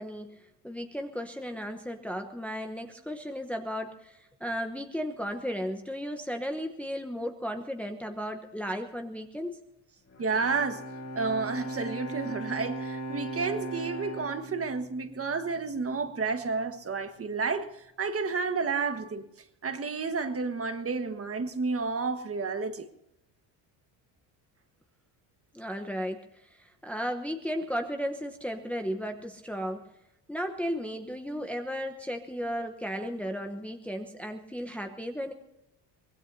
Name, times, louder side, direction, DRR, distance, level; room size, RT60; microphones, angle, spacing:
voice 1, 0.0-9.6 25.5-29.8 30.3-35.3, equal, 5° left, 1.0 m, -35 dB
Bowed string instrument, 10.1-15.5, right 2 dB, 40° left, 3.8 m, -38 dB
voice 2, 10.2-10.8 11.1-19.3 19.6-22.9, right 4 dB, 30° right, 1.5 m, -31 dB
24.5 x 19.0 x 2.8 m
cardioid pair, 110°, 45 cm